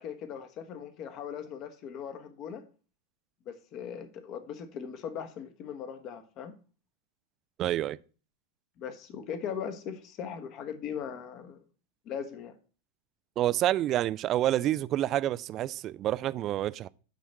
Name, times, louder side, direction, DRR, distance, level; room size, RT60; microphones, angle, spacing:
voice 1, 0.0-2.6 3.5-6.5 8.8-11.6 12.0-12.5, left 7 dB, 35° left, 1.2 m, -39 dB
voice 2, 7.6-8.0 13.4-16.9, right 13 dB, 35° right, 0.3 m, -28 dB
9.1 x 4.2 x 5.9 m
figure-of-eight pair, 90°, 0 cm